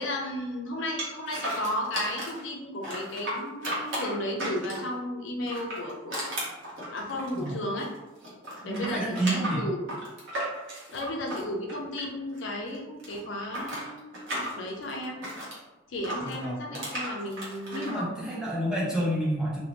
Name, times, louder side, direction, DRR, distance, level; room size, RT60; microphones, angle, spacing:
voice 1, 0.0-6.6 6.9-7.9 8.6-9.8 10.9-15.2 15.9-18.4, left 1 dB, 65° left, 0 dB, 0.5 m, -34 dB
sound 1, 1.0-2.4 2.8-5.0 5.4-8.0 8.2-12.4 12.7-15.6 16.0-17.9, right 1 dB, 65° right, 0.9 m, -35 dB
voice 2, 8.6-9.7 16.2-16.8 17.7-19.7, right 1 dB, 5° right, -7 dB, 0.6 m, -30 dB
2.6 x 2.0 x 2.9 m, 1.1 s
head